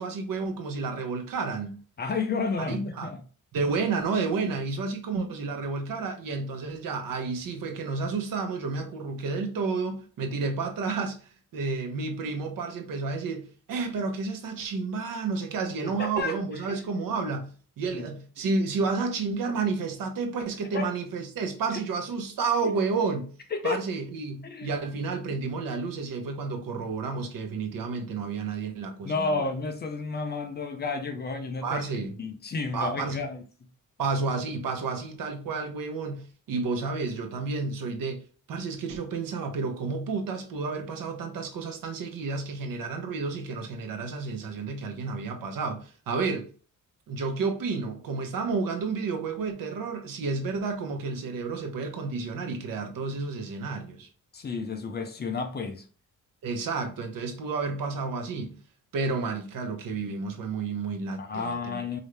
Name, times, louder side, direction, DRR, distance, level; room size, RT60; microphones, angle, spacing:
voice 1, 0.0-1.8 2.6-3.1 3.5-11.2 11.5-17.5 17.8-23.3 23.6-29.3 31.6-32.2 32.7-33.2 34.0-38.2 38.5-46.5 47.1-54.1 56.4-58.5 58.9-61.8, right 4 dB, 80° right, 1.0 m, -31 dB
voice 2, 2.0-3.2 4.8-5.0 15.8-16.4 16.7-16.8 17.9-18.1 20.7-20.9 23.5-23.9 24.4-24.7 29.0-31.8 32.2-33.4 54.3-55.9 61.2-62.0, left 4 dB, 30° left, 0.5 m, -31 dB
4.9 x 2.7 x 3.2 m
wide cardioid pair, 170°, 33 cm